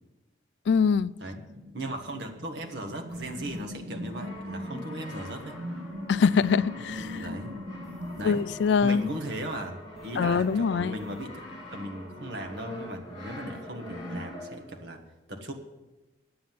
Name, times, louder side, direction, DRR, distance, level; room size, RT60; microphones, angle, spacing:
voice 1, 0.7-1.1 6.1-7.2 8.2-9.0 10.2-10.9, left 5 dB, 65° left, 0.3 m, -23 dB
sound 1, 1.2-14.2, equal, 85° right, 1.7 m, -42 dB
voice 2, 1.7-5.6 7.1-7.6 8.2-8.5 8.8-11.4 11.7-15.0 15.3-15.5, right 1 dB, 60° right, 1.5 m, -37 dB
sound 2, 3.1-3.6 4.1-4.7 5.0-5.9 6.3-6.6 6.9-7.3 7.8-9.5 9.9-10.6 10.9-11.8 12.3-13.0 13.3-13.5 13.9-14.2, equal, ahead, 2.5 m, -55 dB
Brass instrument, 4.0-14.8, left 1 dB, 25° left, 3.1 m, -44 dB
9.5 x 7.6 x 9.3 m
head